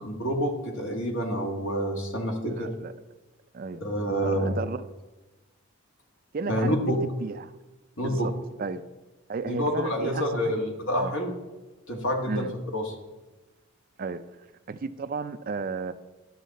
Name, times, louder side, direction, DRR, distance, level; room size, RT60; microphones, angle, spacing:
voice 1, 0.0-2.7 3.8-4.5 6.5-7.0 8.0-8.3 9.5-11.3 11.9-12.9, equal, 60° left, 1.7 m, -28 dB
voice 2, 2.5-2.9 3.5-3.8 4.2-4.8 6.3-6.8 7.2-7.5 8.0-8.3 8.6-8.8 9.3-10.5 11.0-11.1 12.3-12.5 14.0-14.2 14.7-15.9, right 4 dB, 40° right, 0.4 m, -33 dB
11.0 x 6.4 x 4.1 m
head